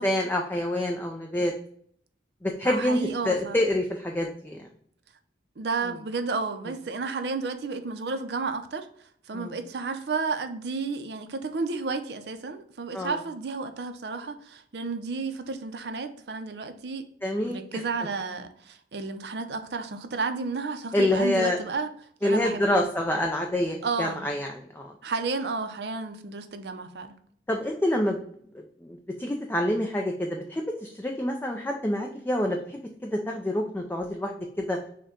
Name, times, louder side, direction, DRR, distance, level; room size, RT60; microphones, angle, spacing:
voice 1, 0.0-1.5 2.4-3.0 3.2-4.7 9.3-9.6 12.9-13.2 17.2-17.8 20.9-21.6 22.2-24.9 27.5-28.2 28.8-34.3 34.6-34.8, left 1 dB, 10° left, 0.4 m, -27 dB
voice 2, 2.6-3.6 5.6-8.9 9.3-17.1 17.4-21.9 22.2-22.8 23.8-24.3 25.0-27.1, right 4 dB, 65° right, 0.6 m, -32 dB
6.3 x 2.2 x 3.6 m
head